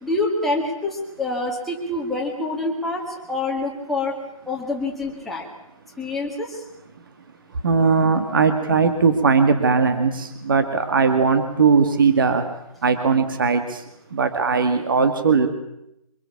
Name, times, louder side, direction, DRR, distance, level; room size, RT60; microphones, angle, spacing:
voice 1, 0.0-4.2 4.5-5.5 6.0-6.7, left 2 dB, ahead, -3 dB, 1.9 m, -26 dB
voice 2, 7.6-12.4 12.8-13.8 14.1-15.5, right 5 dB, 35° right, 8 dB, 2.1 m, -19 dB
25.0 x 22.0 x 7.2 m, 0.83 s
hypercardioid pair, 170°, 19 cm